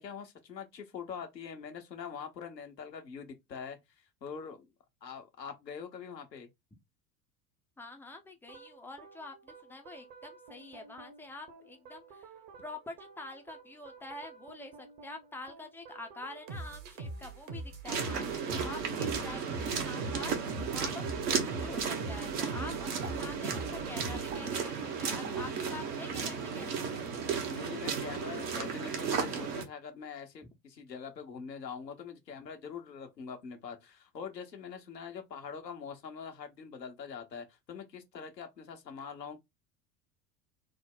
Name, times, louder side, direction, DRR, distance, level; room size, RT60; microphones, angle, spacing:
voice 1, 0.0-4.7 5.0-6.5 27.5-39.4, left 6 dB, 90° left, 0.9 m, -44 dB
voice 2, 7.8-12.2 12.6-26.9, left 2 dB, 5° left, 0.3 m, -46 dB
sound 1, 8.5-25.1, right 2 dB, 45° right, 1.0 m, -45 dB
sound 2, 17.9-29.6, right 6 dB, 70° right, 1.1 m, -34 dB
3.4 x 2.1 x 3.7 m
figure-of-eight pair, 75°, 48 cm